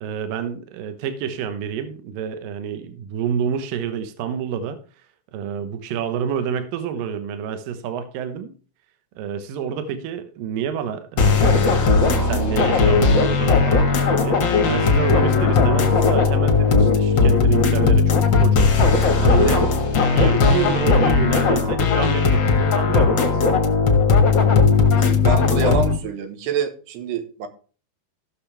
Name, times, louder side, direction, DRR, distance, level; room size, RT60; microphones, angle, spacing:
voice 1, 0.0-4.8 5.3-8.5 9.2-14.4 14.7-19.7 20.1-23.4, right 7 dB, 70° right, 2.6 m, -28 dB
sound 1, 11.2-25.9, left 4 dB, 55° left, 1.2 m, -17 dB
voice 2, 25.0-27.5, right 6 dB, 90° right, 3.4 m, -26 dB
16.0 x 6.7 x 3.4 m
omnidirectional pair, 4.6 m